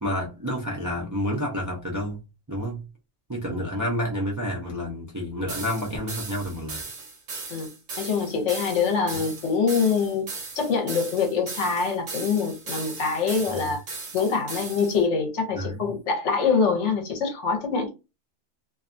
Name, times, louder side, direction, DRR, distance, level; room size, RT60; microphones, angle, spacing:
voice 1, 0.0-2.2 2.5-2.9 3.3-6.8 13.6-13.7 15.5-15.9, equal, 25° right, 0.4 m, -29 dB
sound 1, 5.5-15.0, right 4 dB, 60° right, 1.1 m, -37 dB
voice 2, 8.0-13.8 14.1-17.9, left 5 dB, 70° left, 1.0 m, -24 dB
2.6 x 2.2 x 2.5 m
omnidirectional pair, 1.3 m